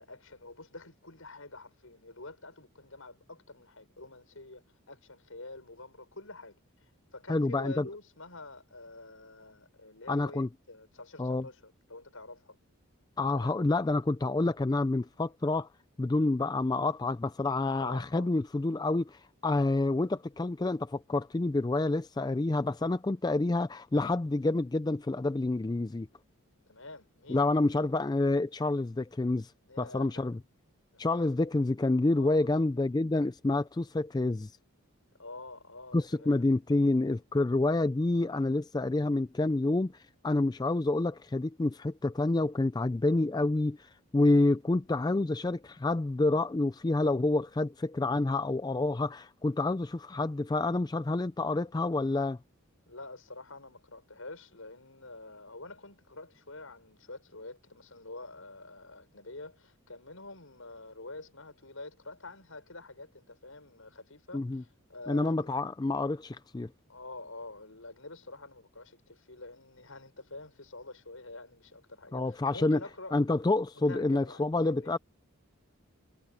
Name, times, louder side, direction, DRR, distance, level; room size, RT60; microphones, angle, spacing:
voice 1, 0.0-6.5 6.8-12.6 13.3-13.6 17.8-18.5 26.7-27.5 29.6-30.2 30.9-31.0 32.1-32.7 35.1-36.4 52.9-65.5 66.9-73.2 73.9-75.0, left 2 dB, 70° left, 6.7 m, -47 dB
voice 2, 7.3-7.9 10.1-10.5 11.2-11.4 13.2-15.7 16.0-26.1 27.3-29.5 29.8-30.4 31.0-34.5 35.9-52.4 64.3-64.6 65.1-66.7 72.1-72.8 73.1-75.0, left 2 dB, 20° left, 0.3 m, -28 dB
head